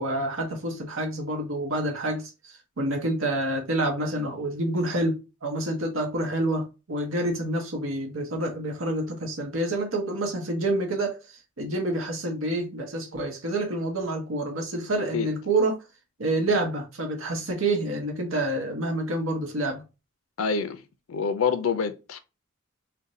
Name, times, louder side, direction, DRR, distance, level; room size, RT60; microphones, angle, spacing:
voice 1, 0.0-11.2 11.6-15.8 16.2-19.8, right 1 dB, 80° right, 0.9 m, -28 dB
voice 2, 20.4-20.8 21.1-22.2, left 5 dB, 80° left, 0.4 m, -26 dB
2.5 x 2.2 x 4.0 m
head